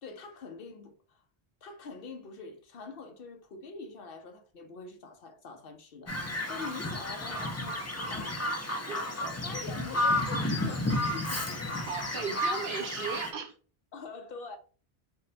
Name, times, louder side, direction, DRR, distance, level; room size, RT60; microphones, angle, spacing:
voice 1, 0.0-1.2 1.6-8.7 9.2-11.4 13.9-14.6, left 4 dB, 65° left, 0.8 m, -44 dB
Bird vocalization bird call bird song, 6.1-13.3, left 1 dB, 25° left, 0.4 m, -32 dB
voice 2, 8.9-9.3 11.9-13.5, right 5 dB, 60° right, 0.8 m, -36 dB
3.6 x 2.1 x 3.9 m
omnidirectional pair, 1.0 m